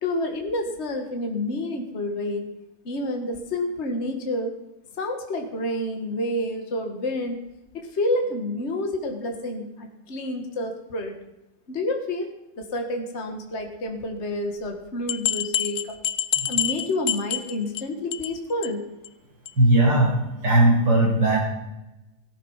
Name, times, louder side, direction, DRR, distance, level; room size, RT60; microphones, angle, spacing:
voice 1, 0.0-2.5 2.8-4.5 5.0-7.4 7.7-11.2 11.7-12.3 12.6-15.9 16.5-18.8, left 1 dB, 40° left, 3 dB, 1.9 m, -29 dB
sound 1, 14.6-14.7 15.1-17.8 18.1-18.4 18.6-18.7 19.0-19.1 19.5-19.6, left 10 dB, 65° left, 1.1 m, -27 dB
voice 2, 19.6-20.2 20.4-21.4, right 1 dB, 70° right, -3 dB, 6.0 m, -18 dB
17.0 x 12.0 x 5.6 m, 0.95 s
omnidirectional pair, 2.0 m